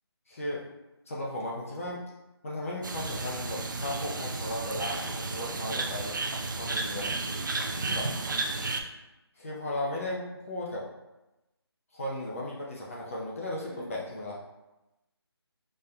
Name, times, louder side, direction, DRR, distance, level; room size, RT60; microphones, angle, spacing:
voice 1, 0.3-0.6 1.1-2.0 2.4-6.2 6.6-7.1 7.9-8.1 9.4-10.8 11.9-14.4, left 1 dB, 30° left, -4 dB, 0.6 m, -35 dB
sound 1, 2.8-8.8, right 3 dB, 50° right, 0.4 m, -33 dB
voice 2, 6.7-8.3 13.7-14.0, right 2 dB, 30° right, -5 dB, 1.0 m, -48 dB
5.3 x 2.7 x 2.2 m, 0.99 s
figure-of-eight pair, 165°, 14 cm